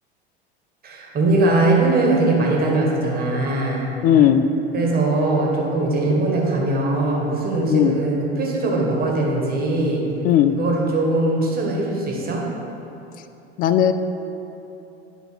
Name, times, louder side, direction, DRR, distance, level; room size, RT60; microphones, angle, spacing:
voice 1, 0.8-3.9 4.7-10.0 10.6-12.5, right 2 dB, 30° right, -2 dB, 1.7 m, -21 dB
voice 2, 4.0-4.4 7.7-8.0 10.2-10.5 13.6-13.9, left 10 dB, 25° left, 10 dB, 0.4 m, -16 dB
9.3 x 4.0 x 5.8 m, 2.9 s
figure-of-eight pair, 75°, 33 cm